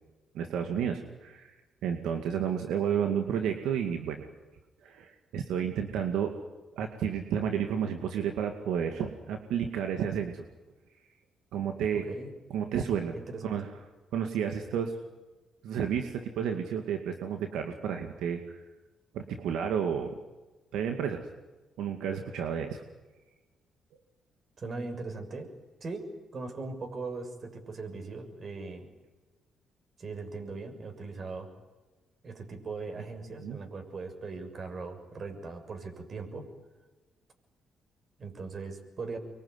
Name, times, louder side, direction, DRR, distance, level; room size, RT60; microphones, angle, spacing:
voice 1, 0.3-1.6 1.8-4.3 4.8-6.3 6.8-10.4 11.5-12.0 12.5-13.1 13.4-13.7 14.1-14.9 15.6-18.6 19.1-20.1 20.7-21.2 21.8-22.8 33.4-33.6, right 8 dB, 85° right, 5 dB, 2.3 m, -31 dB
voice 2, 11.9-12.3 13.1-13.5 24.6-25.5 25.8-26.0 26.3-28.9 30.0-31.5 32.2-36.5 38.2-39.2, right 3 dB, 45° right, 6 dB, 6.7 m, -39 dB
25.0 x 23.5 x 9.8 m, 1.2 s
cardioid pair, 90°, 0 cm